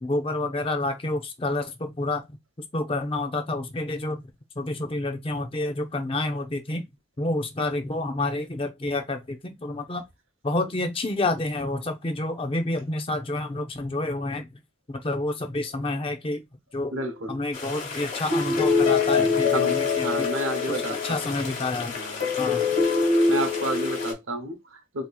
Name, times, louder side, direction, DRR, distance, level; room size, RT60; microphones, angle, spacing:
voice 1, 0.0-2.2 2.7-4.2 4.6-6.8 7.2-10.0 10.4-14.4 14.9-16.4 16.7-16.9 17.3-20.3 20.9-21.9 22.4-22.7, left 2 dB, 25° left, 0.5 m, -29 dB
voice 2, 16.9-17.4 19.2-21.4 21.9-22.2 22.8-22.9 23.3-25.1, right 1 dB, 80° right, 0.8 m, -31 dB
sound 1, 17.5-24.1, left 4 dB, 45° left, 1.7 m, -24 dB
4.0 x 2.9 x 2.3 m
head